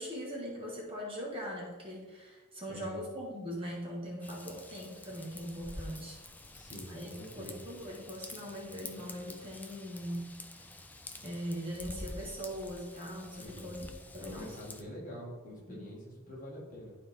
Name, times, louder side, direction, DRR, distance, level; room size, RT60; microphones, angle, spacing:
voice 1, 0.0-6.2 6.9-7.1 7.3-10.4 10.6-10.7 11.2-13.9 14.1-14.6 15.7-15.8, equal, 25° right, -3 dB, 1.5 m, -41 dB
voice 2, 2.7-3.0 6.5-7.6 13.4-13.8 14.2-17.0, equal, 35° left, -4 dB, 1.9 m, -46 dB
Raindrop / Vehicle horn car horn honking / Trickle dribble, 4.2-14.8, left 2 dB, 10° left, 0.4 m, -48 dB
11.5 x 4.1 x 3.6 m, 1.3 s
head